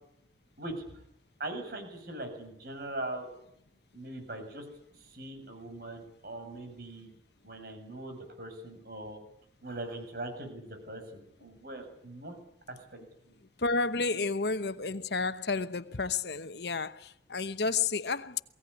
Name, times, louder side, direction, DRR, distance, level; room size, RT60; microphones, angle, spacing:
voice 1, 1.4-3.3 3.9-4.7 5.0-7.1 7.4-9.2 9.6-12.3 12.7-13.0, right 1 dB, 55° right, 6.9 m, -41 dB
voice 2, 13.6-18.4, left 4 dB, 60° left, 1.0 m, -31 dB
23.0 x 17.0 x 9.9 m
head